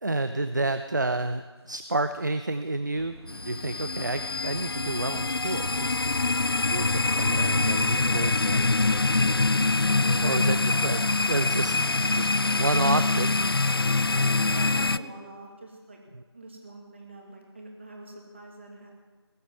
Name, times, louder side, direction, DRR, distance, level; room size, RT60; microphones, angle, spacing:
voice 1, 0.0-3.2 3.4-6.0 6.7-8.6 10.2-11.8 12.1-12.3 12.6-13.3, right 2 dB, 45° right, 10 dB, 0.6 m, -29 dB
sound 1, 1.7-2.1 2.5-2.6 2.9-10.7, right 1 dB, 70° right, 1.3 m, -48 dB
sound 2, 3.3-15.0, left 3 dB, 55° left, 0.4 m, -25 dB
voice 2, 9.9-10.6 11.6-11.9 14.5-16.0 16.3-18.9, right 2 dB, 25° right, 1 dB, 2.2 m, -44 dB
19.5 x 8.1 x 7.4 m, 1.3 s
figure-of-eight pair, 170°, 14 cm